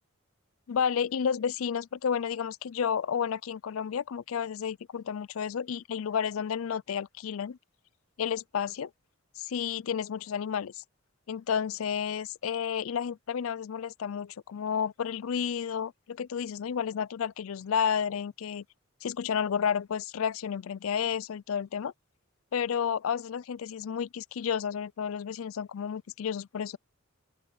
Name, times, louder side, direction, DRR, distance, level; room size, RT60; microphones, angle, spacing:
voice 1, 0.7-7.6 8.2-8.9 9.4-10.8 11.3-18.6 19.0-21.9 22.5-26.8, left 7 dB, 75° left, 0.4 m, -31 dB
open air
head